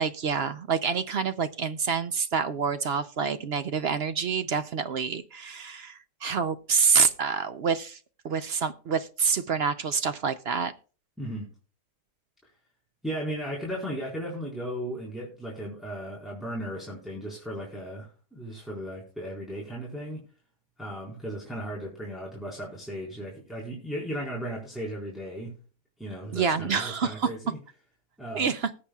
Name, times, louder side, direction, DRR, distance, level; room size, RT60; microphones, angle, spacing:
voice 1, 0.0-8.0 8.2-10.7 26.3-27.3 28.3-28.7, right 6 dB, 65° right, 0.6 m, -27 dB
voice 2, 11.2-11.5 13.0-20.2 20.8-25.5 26.0-27.6 28.2-28.5, equal, ahead, 4.1 m, -36 dB
20.0 x 8.6 x 2.3 m
omnidirectional pair, 1.8 m